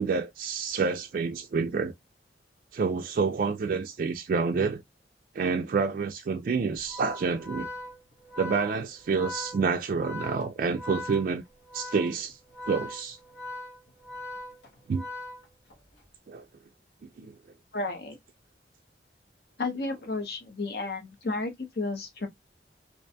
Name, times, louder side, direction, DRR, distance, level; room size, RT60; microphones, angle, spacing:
voice 1, 0.0-1.9 2.7-4.8 5.4-7.7 8.4-11.4 11.7-12.4 12.7-13.2 14.9-15.0 16.3-16.4 17.2-17.3, right 5 dB, 50° right, 0.3 m, -28 dB
Organ, 6.8-15.9, left 2 dB, 85° left, 1.0 m, -41 dB
voice 2, 17.7-18.2 19.6-22.3, left 3 dB, 60° left, 0.7 m, -32 dB
2.4 x 2.2 x 2.5 m
head